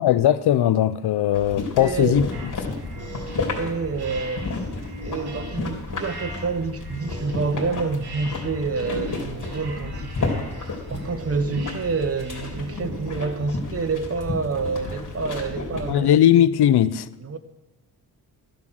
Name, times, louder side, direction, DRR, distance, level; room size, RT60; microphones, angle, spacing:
voice 1, 0.0-2.3 15.9-17.1, left 11 dB, 75° left, 0.6 m, -18 dB
sound 1, 1.3-15.9, left 3 dB, 50° left, 2.8 m, -32 dB
voice 2, 1.8-2.3 3.6-4.5 5.0-10.5 10.9-16.1 17.2-17.4, right 4 dB, 35° right, 0.9 m, -28 dB
sound 2, 2.3-13.4, right 2 dB, 75° right, 1.9 m, -40 dB
13.0 x 7.4 x 6.3 m
wide cardioid pair, 100°, 39 cm